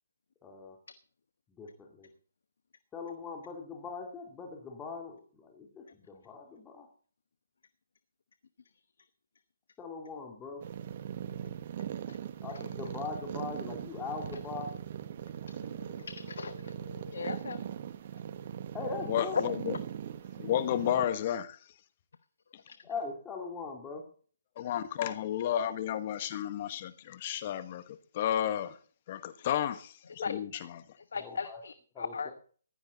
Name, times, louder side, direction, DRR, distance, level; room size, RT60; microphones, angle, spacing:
voice 1, 0.4-0.8 1.5-2.1 2.9-6.9 9.8-10.6 12.4-14.7 18.7-19.4 22.8-24.0 31.1-31.6 31.9-32.3, left 4 dB, 15° left, 0 dB, 2.9 m, -41 dB
sound 1, 10.6-21.1, right 9 dB, 45° right, 1.0 m, -40 dB
voice 2, 16.0-16.6 17.1-17.6 30.2-30.3 31.1-31.7 32.0-32.3, left 5 dB, 70° left, 12 dB, 0.9 m, -37 dB
voice 3, 19.1-19.8 20.4-21.6 24.6-28.8 29.1-30.8, left 10 dB, 40° left, 12 dB, 1.2 m, -32 dB
15.5 x 12.0 x 4.1 m, 0.43 s
hypercardioid pair, 145°, 0 cm